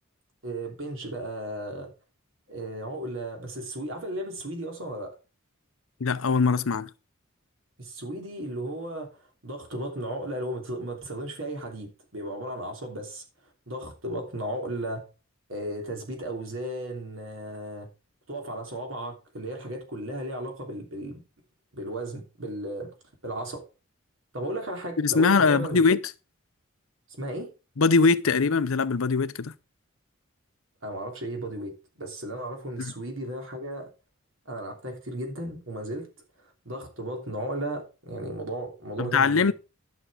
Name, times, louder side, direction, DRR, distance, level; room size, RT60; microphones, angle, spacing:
voice 1, 0.4-1.9 2.5-5.2 7.8-13.2 13.7-15.1 15.5-17.9 18.3-21.2 21.7-22.9 23.2-23.6 24.3-25.8 27.2-27.5 30.8-33.9 34.4-36.1 36.4-39.5, right 1 dB, 70° right, 3.1 m, -35 dB
voice 2, 6.0-6.9 25.0-26.0 27.8-29.5 32.8-32.9 39.0-39.5, left 4 dB, 75° left, 0.7 m, -22 dB
11.5 x 6.3 x 4.9 m
head